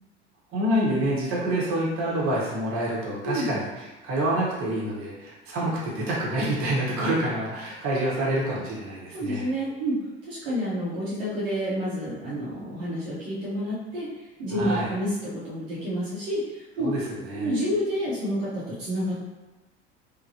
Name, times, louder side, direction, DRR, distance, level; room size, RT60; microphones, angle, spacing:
voice 1, 0.5-9.5 14.5-14.9 16.8-17.5, right 1 dB, 40° right, -6 dB, 1.0 m, -27 dB
voice 2, 9.1-10.0 10.2-16.9 17.3-19.2, equal, 65° right, -8 dB, 0.9 m, -29 dB
3.2 x 2.1 x 2.7 m, 1.1 s
figure-of-eight pair, 65°, 33 cm